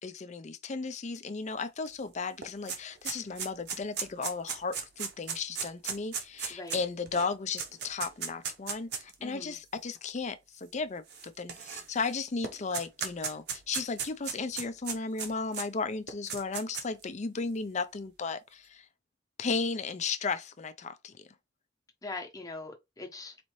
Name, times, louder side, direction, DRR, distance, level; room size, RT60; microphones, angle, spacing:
voice 1, 0.0-18.9 19.4-21.2, left 4 dB, 40° left, 0.5 m, -35 dB
sound 1, 1.9-2.0 2.2-9.1 9.9-10.0 11.1-12.1 12.4-15.7 16.1-17.0, right 6 dB, 60° right, 0.8 m, -36 dB
voice 2, 9.2-9.6 22.0-23.4, left 3 dB, 20° left, 0.9 m, -41 dB
4.1 x 2.7 x 3.1 m
head